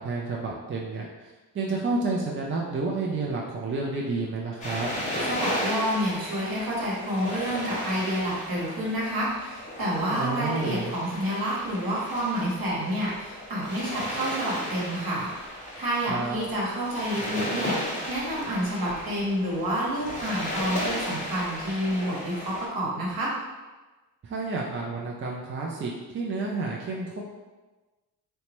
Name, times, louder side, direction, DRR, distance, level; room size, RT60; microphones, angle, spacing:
voice 1, 0.0-4.9 10.1-11.0 16.1-16.4 24.2-27.2, right 3 dB, 30° right, -2 dB, 0.5 m, -30 dB
sound 1, 4.6-22.7, left 1 dB, 20° left, 1.0 m, -35 dB
voice 2, 5.2-15.3 15.8-23.3, equal, 60° right, -5 dB, 1.2 m, -29 dB
2.8 x 2.2 x 3.0 m, 1.2 s
supercardioid pair, 50°, 40 cm